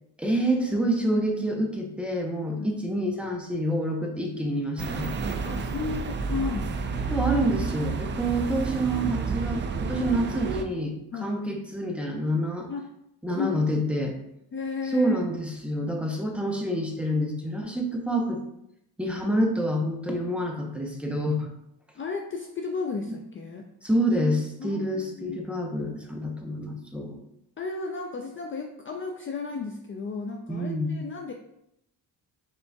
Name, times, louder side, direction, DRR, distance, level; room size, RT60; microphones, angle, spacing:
voice 1, 0.2-5.1 7.1-10.9 11.2-12.7 13.2-14.2 14.9-18.4 19.0-21.5 23.1-23.2 23.8-27.2 30.5-31.0, right 1 dB, 5° right, 1 dB, 0.7 m, -27 dB
sound 1, 4.8-10.6, right 5 dB, 30° right, 0.4 m, -30 dB
voice 2, 5.4-7.2 11.1-11.3 12.7-12.9 13.3-13.9 14.5-15.2 22.0-23.7 24.6-25.4 27.6-31.3, left 4 dB, 35° left, 3 dB, 0.4 m, -34 dB
5.2 x 3.7 x 2.2 m, 0.78 s
cardioid pair, 105°, 38 cm